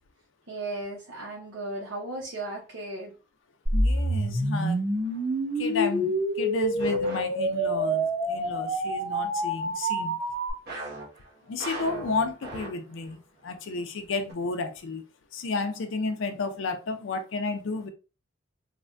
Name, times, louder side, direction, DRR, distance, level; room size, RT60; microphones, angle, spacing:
voice 1, 0.5-3.1 11.8-12.1, right 2 dB, 85° right, 0.7 m, -36 dB
voice 2, 3.7-4.8 5.6-10.2 11.5-15.0 15.3-17.9, left 4 dB, 75° left, 0.4 m, -32 dB
sound 1, 3.7-10.5, right 1 dB, 20° right, 0.9 m, -27 dB
sound 2, 4.9-5.3 6.8-7.8 10.7-13.1 13.5-13.6 14.3-14.4, right 2 dB, 50° right, 1.0 m, -40 dB
3.3 x 2.1 x 2.5 m
head